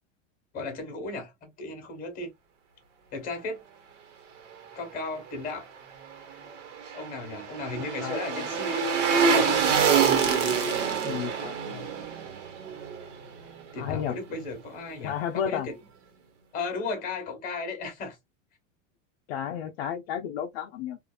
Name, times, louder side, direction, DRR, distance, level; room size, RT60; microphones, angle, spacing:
voice 1, 0.5-2.3 3.1-3.6 4.7-5.7 6.9-8.8 9.1-9.6 13.7-15.8 16.5-18.2, left 3 dB, 25° left, 1.1 m, -35 dB
sound 1, 6.4-13.6 13.9-14.0, right 6 dB, 70° right, 1.2 m, -26 dB
voice 2, 8.0-8.5 11.0-11.9 13.8-14.1 15.0-15.7 19.3-21.0, left 9 dB, 55° left, 0.5 m, -33 dB
2.7 x 2.5 x 2.2 m
supercardioid pair, 160°, 37 cm